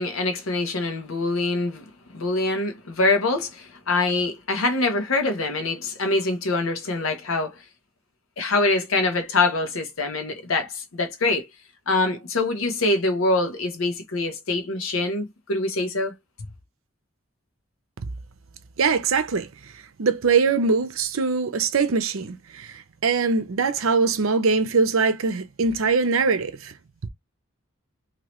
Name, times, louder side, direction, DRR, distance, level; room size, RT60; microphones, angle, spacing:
voice 1, 0.0-1.9 2.1-7.6 8.4-11.5 11.9-16.1, left 2 dB, 80° left, 0.8 m, -24 dB
voice 2, 18.8-19.5 20.0-26.7, right 4 dB, 80° right, 0.6 m, -22 dB
2.9 x 2.8 x 3.0 m
head